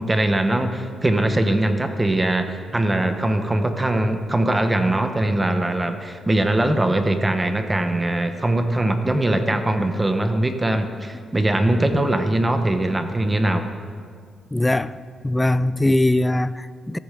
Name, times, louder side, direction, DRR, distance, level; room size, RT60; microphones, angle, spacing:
voice 1, 0.0-13.7, right 1 dB, 15° right, 0.9 m, -21 dB
voice 2, 14.5-14.9 15.2-17.0, left 1 dB, 10° left, 0.4 m, -20 dB
14.0 x 8.1 x 6.7 m
cardioid pair, 120°, 0 cm